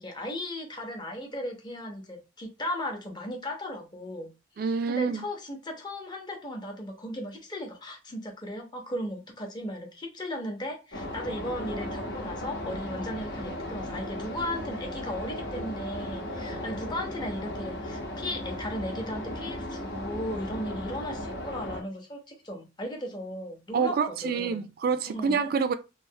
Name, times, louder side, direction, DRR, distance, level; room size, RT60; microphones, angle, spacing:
voice 1, 0.0-4.3 4.9-24.6 25.1-25.4, left 1 dB, 25° left, 0.7 m, -36 dB
voice 2, 4.6-5.2 23.7-25.7, right 5 dB, 55° right, 0.3 m, -27 dB
sound 1, 10.9-21.8, left 1 dB, 75° left, 0.9 m, -36 dB
3.1 x 2.1 x 2.7 m
head